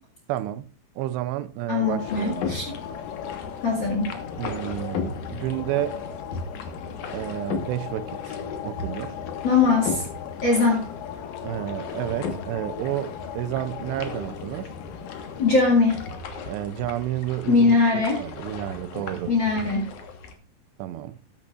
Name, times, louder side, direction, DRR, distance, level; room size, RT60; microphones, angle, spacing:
voice 1, 0.3-0.7 1.0-2.5 4.4-6.1 7.1-9.2 11.4-14.7 16.5-19.3 20.8-21.2, right 13 dB, 90° right, 2.9 m, -31 dB
voice 2, 1.7-2.6 3.6-4.1 9.4-10.0 10.4-10.9 15.4-16.0 17.5-18.2 19.3-19.9, left 4 dB, 40° left, 1.9 m, -21 dB
sound 1, 1.8-16.2, left 9 dB, 80° left, 1.9 m, -38 dB
sound 2, 2.1-20.3, left 4 dB, 60° left, 2.2 m, -37 dB
14.0 x 10.5 x 2.5 m
omnidirectional pair, 4.8 m